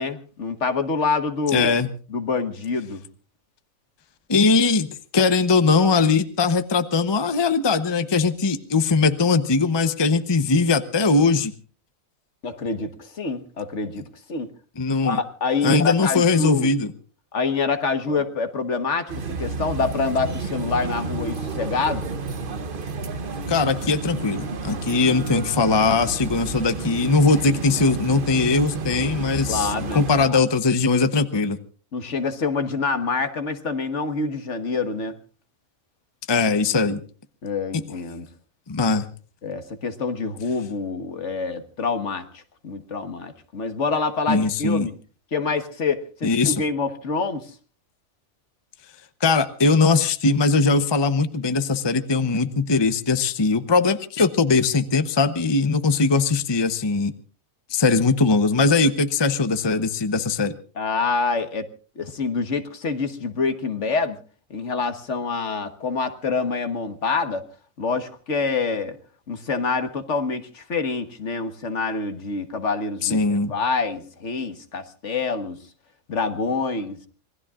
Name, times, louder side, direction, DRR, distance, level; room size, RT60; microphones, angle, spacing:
voice 1, 0.0-1.7 2.1-3.0 12.4-14.0 14.3-14.5 15.0-16.7 17.3-22.1 29.5-30.4 31.9-35.2 37.4-38.3 39.4-44.9 45.3-47.5 60.8-61.7 62.0-64.2 64.5-67.4 67.8-69.0 69.3-75.6 76.1-77.1, left 4 dB, 60° left, 9 dB, 1.7 m, -26 dB
voice 2, 1.5-1.9 4.3-11.5 14.8-15.2 15.6-16.9 23.5-31.6 36.3-37.0 38.7-39.0 44.3-44.9 46.2-46.6 49.2-57.1 57.7-60.5 73.0-73.5, left 4 dB, 25° left, 10 dB, 0.8 m, -20 dB
sound 1, 19.1-30.3, right 4 dB, 45° right, 1.1 m, -31 dB
26.5 x 20.5 x 2.5 m, 0.39 s
omnidirectional pair, 1.4 m